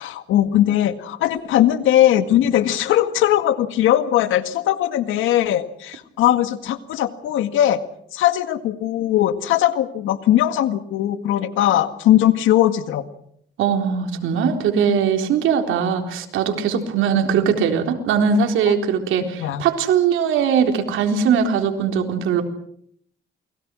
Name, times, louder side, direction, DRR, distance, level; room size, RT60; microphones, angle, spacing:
voice 1, 0.0-7.8 8.1-13.0 18.7-18.8 19.4-19.6, left 12 dB, 90° left, 10 dB, 1.9 m, -19 dB
voice 2, 13.6-22.4, right 7 dB, 85° right, 4 dB, 4.0 m, -20 dB
29.0 x 21.5 x 6.3 m, 0.68 s
cardioid pair, 90°, 20 cm